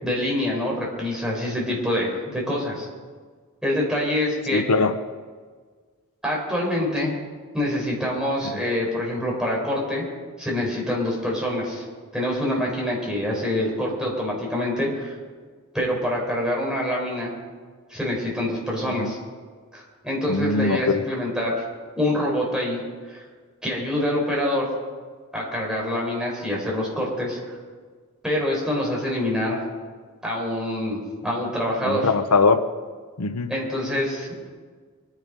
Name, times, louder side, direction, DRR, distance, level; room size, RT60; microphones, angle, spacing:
voice 1, 0.0-2.9 3.6-4.7 6.2-7.1 7.5-10.0 10.4-11.8 12.1-15.1 15.7-17.3 17.9-19.2 19.7-21.6 21.9-22.8 23.1-23.2 23.6-24.7 25.3-27.4 28.2-29.6 30.2-32.1 33.5-34.5, left 1 dB, 5° right, -4 dB, 5.0 m, -25 dB
voice 2, 4.5-5.0 18.9-19.1 20.3-21.0 31.8-32.6 33.2-33.5, left 4 dB, 85° left, 10 dB, 0.8 m, -21 dB
24.0 x 10.5 x 5.3 m, 1.5 s
head